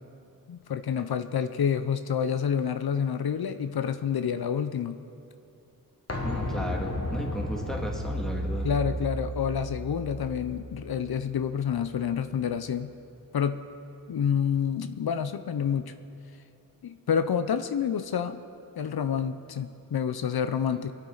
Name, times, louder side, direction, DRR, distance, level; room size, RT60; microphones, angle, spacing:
voice 1, 0.5-5.0 8.6-12.9 13.3-13.7 14.1-15.9 16.8-18.4 18.8-20.9, left 7 dB, 90° left, 10 dB, 0.6 m, -28 dB
sound 1, 6.1-11.7 12.0-12.1, equal, 40° left, 1.4 m, -33 dB
voice 2, 6.2-8.7, equal, ahead, -1 dB, 2.1 m, -35 dB
24.0 x 9.0 x 3.9 m, 2.8 s
wide cardioid pair, 80°, 36 cm